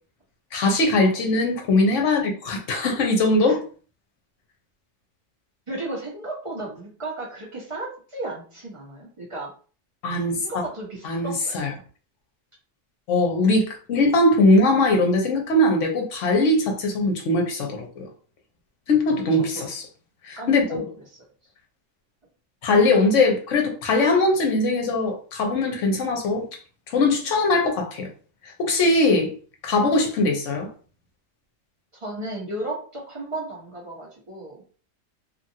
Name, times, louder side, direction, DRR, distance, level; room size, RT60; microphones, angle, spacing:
voice 1, 0.5-3.6 10.0-10.4 11.0-11.7 13.1-18.1 18.9-19.8 20.2-20.8 22.6-26.4 26.9-28.1 28.6-29.3 29.6-30.7, left 2 dB, 70° left, 1.1 m, -21 dB
voice 2, 5.7-9.5 10.4-11.6 19.4-19.7 20.4-21.0 32.0-34.6, right 2 dB, 25° right, 1.2 m, -34 dB
2.9 x 2.4 x 2.7 m
omnidirectional pair, 1.4 m